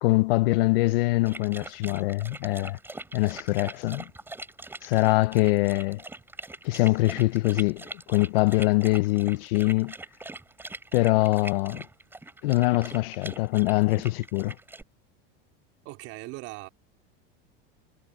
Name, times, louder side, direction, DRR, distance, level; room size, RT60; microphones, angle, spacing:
voice 1, 0.0-2.8 3.1-4.1 4.8-6.0 6.6-9.9 10.9-11.8 12.4-14.5, left 20 dB, 80° left, 0.7 m, -23 dB
sound 1, 1.3-14.8, right 2 dB, 5° right, 7.7 m, -42 dB
voice 2, 15.8-16.7, right 22 dB, 50° right, 3.8 m, -39 dB
supercardioid pair, 150°, 29 cm